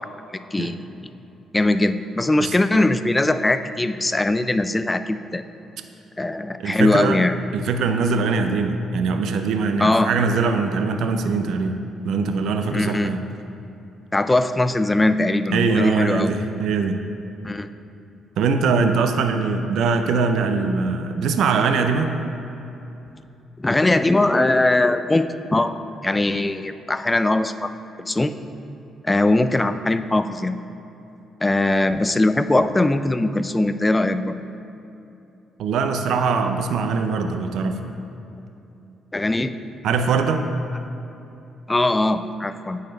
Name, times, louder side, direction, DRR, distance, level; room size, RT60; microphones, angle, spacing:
voice 1, 1.5-5.4 6.2-7.3 9.8-10.1 12.7-13.1 14.1-16.3 17.4-17.7 23.6-25.8 26.0-27.7 28.0-28.3 29.0-30.6 31.4-34.4 39.1-39.6 41.7-42.8, left 2 dB, 15° left, 11 dB, 0.3 m, -20 dB
voice 2, 6.6-7.2 7.5-11.8 12.0-13.2 15.5-17.0 18.4-22.2 35.6-37.8 39.8-40.5, right 4 dB, 75° right, 6 dB, 0.5 m, -22 dB
9.1 x 4.1 x 5.2 m, 2.9 s
cardioid pair, 90°, 0 cm